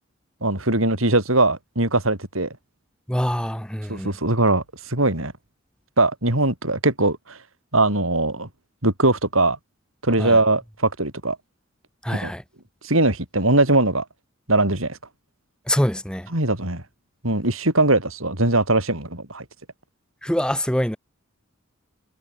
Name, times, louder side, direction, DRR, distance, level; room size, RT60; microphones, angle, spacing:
voice 1, 0.4-2.6 3.9-5.3 6.0-7.4 7.7-8.5 8.8-9.6 10.0-11.4 12.1-12.3 12.8-14.0 14.5-15.0 16.3-16.8 17.2-19.4, right 2 dB, 80° right, 7.7 m, -21 dB
voice 2, 3.1-4.1 10.2-10.4 12.0-12.4 15.7-16.3 20.2-21.0, equal, 5° left, 3.0 m, -24 dB
head